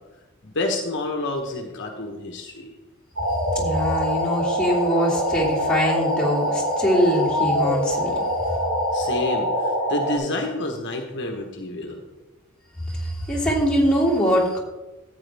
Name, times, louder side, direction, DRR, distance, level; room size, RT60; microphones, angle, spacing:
voice 1, 0.4-2.7 8.9-12.0, left 2 dB, 55° left, 3 dB, 1.2 m, -29 dB
sound 1, 3.2-10.2, equal, 90° right, 3.1 m, -24 dB
voice 2, 3.3-8.2 12.9-14.6, equal, 5° left, -6 dB, 2.8 m, -23 dB
13.5 x 8.5 x 3.5 m, 1.1 s
head